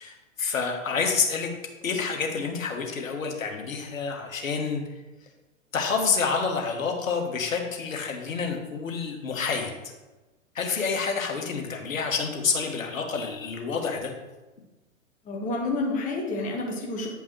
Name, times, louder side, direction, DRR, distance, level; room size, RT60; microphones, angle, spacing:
voice 1, 0.0-1.5 1.8-4.8 5.7-9.7 10.5-14.1, left 5 dB, 75° left, 3 dB, 1.4 m, -28 dB
voice 2, 15.2-17.1, left 2 dB, 20° left, 0 dB, 1.1 m, -29 dB
9.1 x 5.2 x 3.2 m, 1.1 s
figure-of-eight pair, 120°, 41 cm